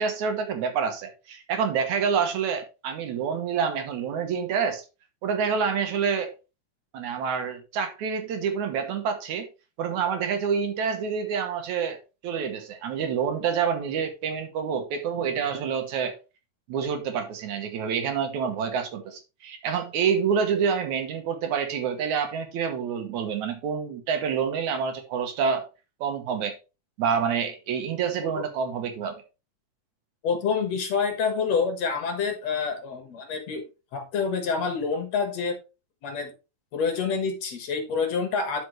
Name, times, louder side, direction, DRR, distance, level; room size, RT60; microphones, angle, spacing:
voice 1, 0.0-4.8 5.2-6.3 6.9-9.5 9.8-12.0 12.2-16.2 16.7-25.7 26.0-26.6 27.0-29.2, right 6 dB, 70° right, 2.4 m, -27 dB
voice 2, 30.2-33.6 33.9-35.6 36.0-36.3 36.7-38.6, left 5 dB, 60° left, 2.5 m, -27 dB
11.5 x 5.2 x 3.2 m
omnidirectional pair, 3.6 m